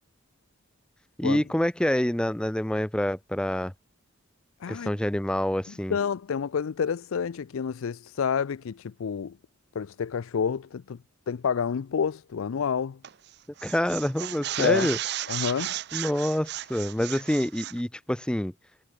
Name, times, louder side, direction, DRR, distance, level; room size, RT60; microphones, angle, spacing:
voice 1, 1.2-3.7 4.7-6.0 13.6-15.0 15.9-18.5, left 1 dB, 5° left, 0.4 m, -27 dB
voice 2, 4.6-4.9 5.9-9.4 9.7-11.0 11.3-13.0 14.6-14.9 15.3-15.7, left 6 dB, 80° left, 0.4 m, -28 dB
sound 1, 13.0-13.3 13.6-17.8, right 13 dB, 50° right, 0.5 m, -34 dB
head